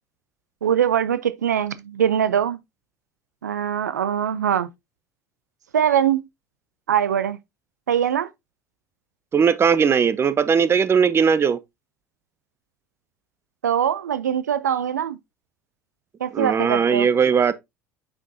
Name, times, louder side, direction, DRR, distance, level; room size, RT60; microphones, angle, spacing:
voice 1, 0.6-2.6 3.4-4.7 5.7-6.2 6.9-7.4 7.9-8.3 13.6-15.2 16.2-17.1, right 9 dB, 85° right, 0.4 m, -22 dB
voice 2, 9.3-11.6 16.3-17.5, right 6 dB, 30° right, 0.7 m, -18 dB
6.8 x 5.8 x 2.6 m
figure-of-eight pair, 65°, 9 cm